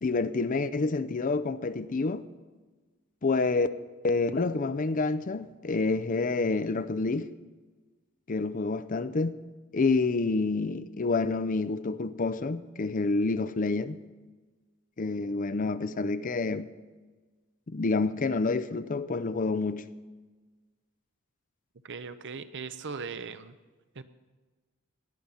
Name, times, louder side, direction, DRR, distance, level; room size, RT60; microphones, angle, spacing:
voice 1, 0.0-2.3 3.2-3.7 4.0-7.3 8.3-9.4 9.7-14.0 15.0-16.7 17.7-19.9, left 3 dB, 40° left, 0.5 m, -28 dB
voice 2, 21.8-23.6 23.9-24.0, right 5 dB, 55° right, 0.8 m, -39 dB
18.5 x 10.5 x 5.6 m
head